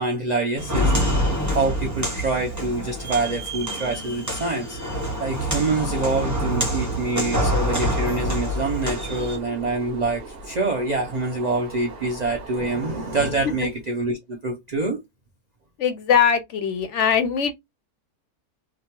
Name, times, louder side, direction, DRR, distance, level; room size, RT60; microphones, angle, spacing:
voice 1, 0.0-4.8 5.2-15.0, right 3 dB, 80° right, 0.3 m, -26 dB
Walk footsteps, 0.6-9.4, equal, 15° right, 0.8 m, -26 dB
sound 1, 7.7-13.3, right 4 dB, 55° right, 0.7 m, -40 dB
voice 2, 15.8-17.5, left 7 dB, 65° left, 0.8 m, -21 dB
2.9 x 2.2 x 2.8 m
omnidirectional pair, 1.5 m